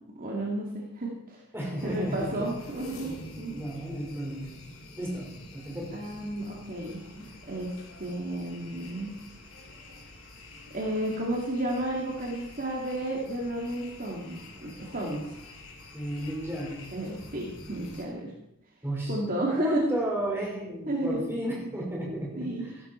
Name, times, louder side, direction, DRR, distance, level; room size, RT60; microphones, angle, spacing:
voice 1, 0.2-1.4 1.8-3.1 3.4-3.6 5.9-7.7 8.0-9.1 10.7-15.3 16.9-18.3 19.1-20.0 20.9-21.3 22.4-22.6, right 1 dB, 40° right, -2 dB, 2.3 m, -32 dB
voice 2, 1.5-2.5 3.5-4.4 5.0-5.3 5.5-6.0 15.9-16.8 18.8-19.2 19.4-22.5, right 1 dB, 10° right, -3 dB, 5.0 m, -32 dB
sound 1, 1.8-18.0, left 1 dB, 75° left, 3.0 m, -48 dB
15.0 x 12.5 x 4.5 m, 0.82 s
head